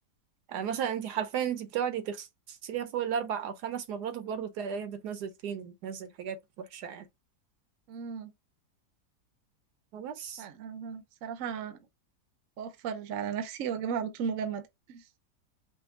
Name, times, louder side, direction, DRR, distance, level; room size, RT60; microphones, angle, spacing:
voice 1, 0.5-7.1 9.9-10.4, right 8 dB, 75° right, 1.3 m, -34 dB
voice 2, 7.9-8.3 10.4-11.8 12.6-15.0, right 7 dB, 60° right, 1.0 m, -35 dB
5.2 x 2.3 x 3.7 m
omnidirectional pair, 1.8 m